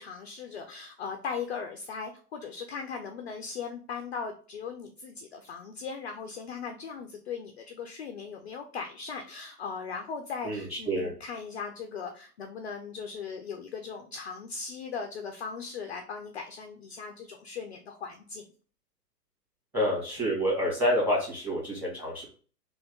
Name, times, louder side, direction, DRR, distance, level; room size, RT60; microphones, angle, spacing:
voice 1, 0.0-18.4, left 5 dB, 45° left, 4 dB, 0.4 m, -38 dB
voice 2, 10.4-11.1 19.7-22.2, equal, 5° right, -4 dB, 1.5 m, -28 dB
3.3 x 2.2 x 3.6 m, 0.41 s
figure-of-eight pair, 120°, 49 cm